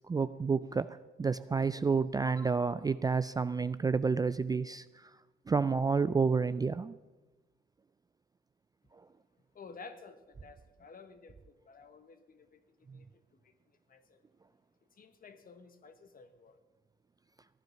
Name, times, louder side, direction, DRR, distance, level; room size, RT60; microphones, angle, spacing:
voice 1, 0.1-0.9 1.2-4.8 5.5-6.9, right 5 dB, 20° right, 0.3 m, -29 dB
voice 2, 9.5-13.5 13.9-14.2 14.9-16.6, left 4 dB, 45° left, 1.3 m, -53 dB
15.0 x 10.5 x 5.7 m
cardioid pair, 90°, 20 cm